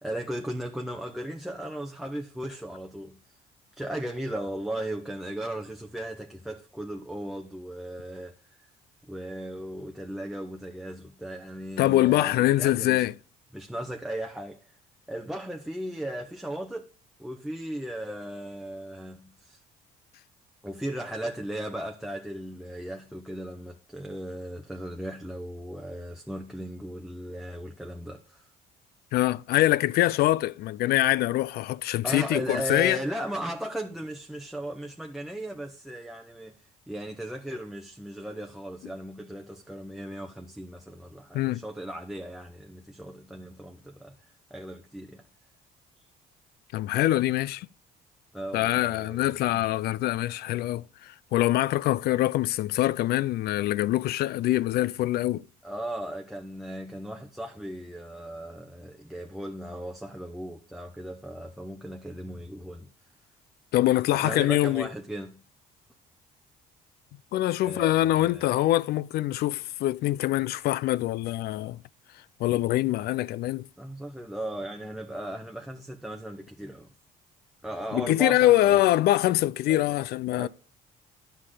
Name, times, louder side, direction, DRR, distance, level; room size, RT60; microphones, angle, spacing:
voice 1, 0.0-3.4 3.7-8.7 9.1-13.1 13.5-14.8 15.1-16.9 17.2-19.6 20.6-28.5 32.0-45.3 48.3-49.5 55.6-62.9 64.1-65.4 67.6-68.5 73.8-76.9 77.6-78.8 79.7-79.9 80.3-80.5, right 1 dB, ahead, 0.8 m, -37 dB
voice 2, 11.8-13.1 29.1-33.0 41.3-41.6 46.7-47.7 48.5-55.5 63.7-64.9 67.3-71.8 72.4-73.7 77.9-80.5, left 15 dB, 70° left, 0.4 m, -24 dB
11.0 x 5.7 x 4.8 m
cardioid pair, 110°, 17 cm